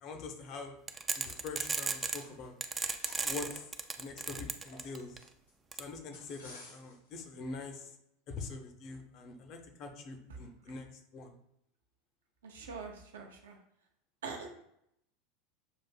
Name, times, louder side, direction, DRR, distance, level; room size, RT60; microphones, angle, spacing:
voice 1, 0.0-0.8 1.2-2.5 3.2-3.6 4.0-5.2 5.7-7.9 8.3-10.9 11.1-11.4, left 4 dB, 40° left, 5 dB, 0.6 m, -44 dB
sound 1, 0.9-2.2 2.6-5.2 5.7-5.8, right 4 dB, 15° right, 0.3 m, -34 dB
sound 2, 1.3-2.5 2.8-5.5 6.1-7.1, left 2 dB, 75° left, 1.3 m, -55 dB
voice 2, 12.4-13.6 14.2-14.5, right 4 dB, 65° right, 3 dB, 0.6 m, -43 dB
7.1 x 2.5 x 2.3 m, 0.76 s
figure-of-eight pair, 80°, 0 cm